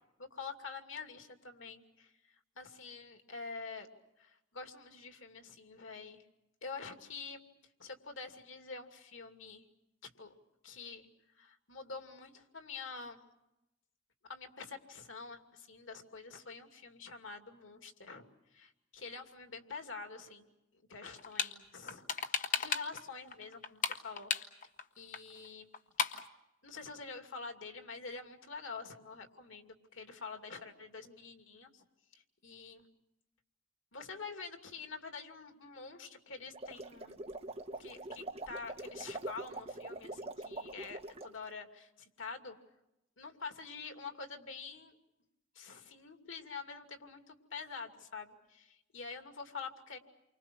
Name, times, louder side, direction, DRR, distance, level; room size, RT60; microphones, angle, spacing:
voice 1, 0.2-3.9 4.2-6.2 6.6-7.4 7.8-9.7 10.2-10.3 10.6-11.1 11.4-13.2 14.2-18.2 18.5-24.3 25.0-25.7 26.0-26.1 26.6-31.8 32.1-32.9 33.9-37.2 37.8-42.6 43.2-44.9 45.5-50.0, left 4 dB, 85° left, 5 dB, 2.6 m, -47 dB
sound 1, 21.1-21.5 21.9-23.0 23.3-24.8 25.1-25.2 25.4-25.5 25.7-26.3, left 6 dB, 40° left, 1.4 m, -34 dB
sound 2, 36.4-41.3, right 2 dB, 30° right, 1.2 m, -44 dB
29.5 x 24.5 x 6.1 m, 0.91 s
head